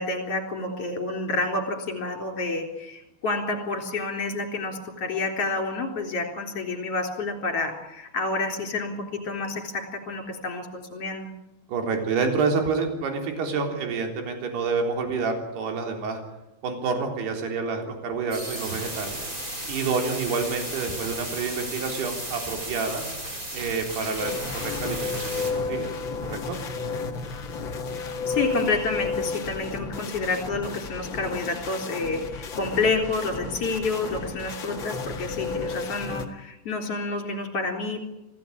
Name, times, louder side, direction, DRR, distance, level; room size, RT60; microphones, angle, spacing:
voice 1, 0.0-11.3 28.3-38.0, left 3 dB, 35° left, 4 dB, 4.2 m, -29 dB
voice 2, 11.7-16.2 16.6-19.2 19.7-23.0 23.5-25.9 26.3-26.6, right 4 dB, 60° right, 4 dB, 5.5 m, -28 dB
sound 1, 18.3-25.5, right 1 dB, 15° right, 6.5 m, -35 dB
sound 2, 24.2-36.3, left 4 dB, 90° left, 1.0 m, -32 dB
26.0 x 17.0 x 8.7 m, 0.94 s
omnidirectional pair, 5.5 m